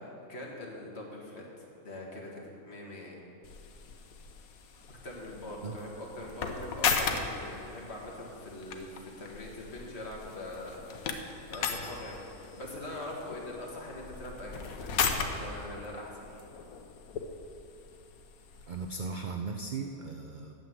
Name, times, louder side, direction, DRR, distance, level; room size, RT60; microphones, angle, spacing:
voice 1, 0.0-3.2 4.9-11.2 11.5-16.4, left 1 dB, 45° left, -2 dB, 1.9 m, -43 dB
sound 1, 3.4-19.0, left 6 dB, 75° left, 1.2 m, -37 dB
voice 2, 18.7-20.5, right 4 dB, 70° right, 4 dB, 0.4 m, -37 dB
9.3 x 7.5 x 7.7 m, 2.8 s
omnidirectional pair, 1.5 m